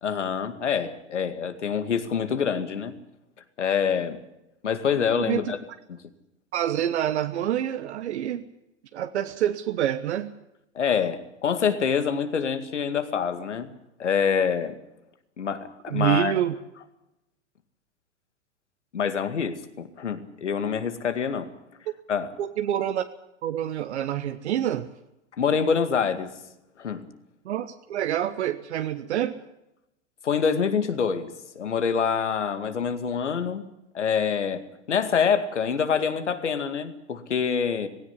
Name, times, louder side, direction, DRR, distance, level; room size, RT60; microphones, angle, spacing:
voice 1, 0.0-2.9 3.6-4.2 4.6-5.6 10.7-13.7 14.0-14.8 15.4-16.4 18.9-21.5 22.1-22.3 25.4-26.3 26.8-27.1 30.2-33.6 33.9-37.9, left 6 dB, 85° left, 10 dB, 2.2 m, -26 dB
voice 2, 5.1-5.5 6.5-8.5 8.9-10.3 15.9-16.5 22.4-23.0 23.4-24.9 27.4-29.4, right 11 dB, 70° right, 9 dB, 1.2 m, -27 dB
17.0 x 17.0 x 9.8 m, 0.90 s
hypercardioid pair, 105°, 35 cm